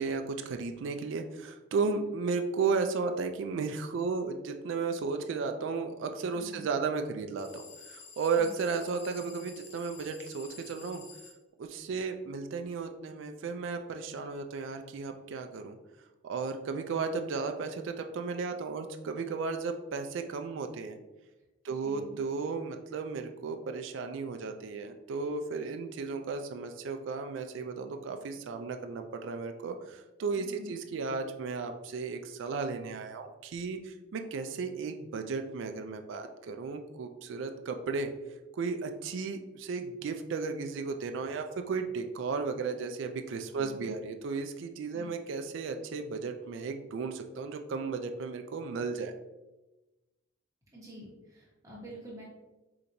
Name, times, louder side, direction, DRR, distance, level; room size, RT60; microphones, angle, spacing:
voice 1, 0.0-11.0 11.6-15.8 16.2-21.0 21.6-38.1 38.5-49.1, right 4 dB, 60° right, 6 dB, 0.3 m, -34 dB
voice 2, 1.8-2.1 6.3-6.7 8.4-8.5 21.7-22.2 30.3-30.8 43.5-44.0 44.9-45.1 50.7-52.2, equal, 15° right, -6 dB, 1.2 m, -47 dB
sound 1, 7.4-11.4, left 5 dB, 35° left, 0.6 m, -50 dB
5.0 x 2.8 x 2.6 m, 1.1 s
head